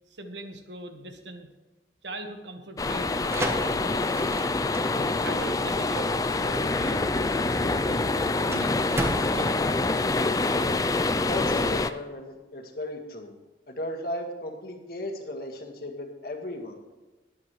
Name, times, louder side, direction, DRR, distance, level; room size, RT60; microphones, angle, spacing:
voice 1, 0.1-1.5 2.0-4.3 5.2-6.1 6.4-10.0, right 2 dB, 85° right, 6 dB, 1.4 m, -41 dB
sound 1, 2.8-11.9, left 3 dB, 20° left, 0.4 m, -26 dB
sound 2, 3.3-10.6, right 1 dB, 15° right, 1.1 m, -36 dB
voice 2, 11.3-13.4 13.7-17.0, left 1 dB, 55° left, 2 dB, 1.8 m, -36 dB
20.5 x 8.6 x 3.2 m, 1.2 s
head